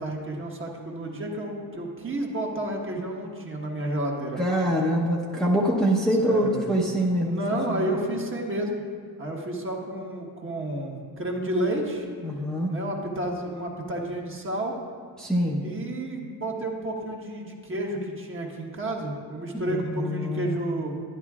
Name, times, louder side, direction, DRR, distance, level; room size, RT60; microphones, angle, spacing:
voice 1, 0.0-4.4 6.2-6.7 7.2-8.8 9.2-12.1 12.7-14.8 15.6-21.0, right 1 dB, 30° right, -1 dB, 1.4 m, -31 dB
voice 2, 4.4-7.4 7.7-7.9 12.2-12.7 15.2-15.6 19.6-20.5, equal, ahead, -5 dB, 0.9 m, -24 dB
11.0 x 10.5 x 2.4 m, 2.1 s
cardioid pair, 95°, 41 cm